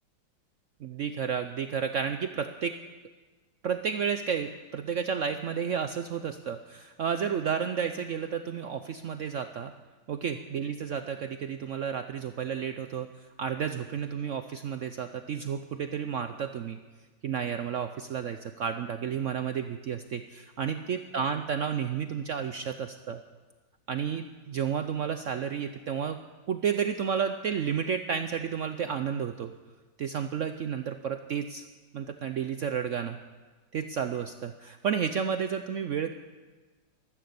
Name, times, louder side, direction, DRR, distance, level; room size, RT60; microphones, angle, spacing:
voice 1, 0.8-2.7 3.6-9.7 10.1-16.8 17.2-23.2 23.9-26.2 26.5-29.5 30.0-31.6 31.9-33.2 33.7-36.1, right 7 dB, 70° right, 8 dB, 0.7 m, -31 dB
13.5 x 13.5 x 6.8 m, 1.3 s
omnidirectional pair, 1.9 m